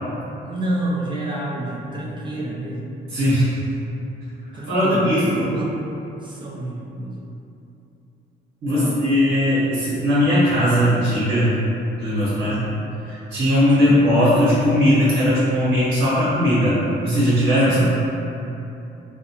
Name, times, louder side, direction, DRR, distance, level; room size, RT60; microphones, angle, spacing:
voice 1, 0.4-3.0 4.5-5.8 6.2-7.2 8.7-9.0 12.4-12.7 13.7-14.0 17.7-17.9, right 1 dB, 25° right, -4 dB, 0.4 m, -29 dB
voice 2, 3.1-3.5 4.7-5.5 8.6-11.5 12.0-12.7 13.0-18.0, equal, 75° right, -10 dB, 0.9 m, -18 dB
2.4 x 2.2 x 2.7 m, 2.8 s
cardioid pair, 90°, 20 cm